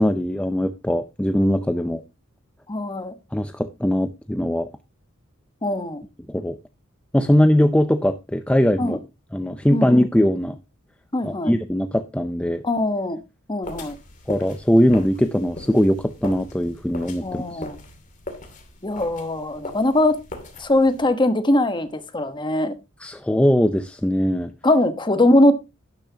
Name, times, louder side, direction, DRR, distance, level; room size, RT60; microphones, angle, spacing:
voice 1, 0.0-2.0 3.3-4.7 6.3-6.6 7.1-9.0 9.3-10.6 11.2-12.6 14.3-17.6 23.0-24.5, equal, 5° left, 0.5 m, -20 dB
voice 2, 2.7-3.1 5.6-6.0 8.8-9.0 9.7-9.9 11.1-11.5 12.6-13.2 13.5-14.0 17.2-17.8 18.8-20.2 20.6-22.7 24.6-25.5, left 1 dB, 20° left, 1.1 m, -21 dB
sound 1, 13.6-21.1, left 2 dB, 40° left, 2.6 m, -40 dB
12.0 x 10.5 x 2.8 m
head